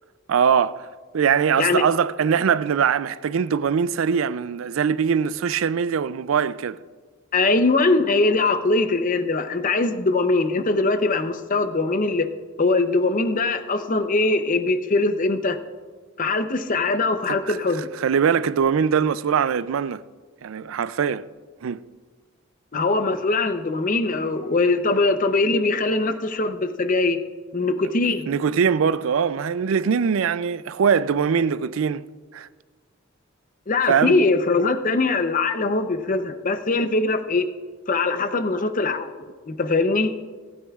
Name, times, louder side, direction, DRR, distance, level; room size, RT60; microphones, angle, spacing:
voice 1, 0.3-0.9 1.1-6.8 17.3-17.6 18.0-20.0 20.4-21.2 21.6-21.8 28.3-32.1 32.3-32.5 33.9-34.2, right 7 dB, 85° right, 0.4 m, -22 dB
voice 2, 7.3-12.3 12.6-15.6 16.2-17.9 22.7-27.2 27.5-28.3 33.7-37.4 37.9-39.1 39.5-40.1, left 3 dB, 40° left, 0.7 m, -21 dB
27.5 x 9.2 x 2.4 m
head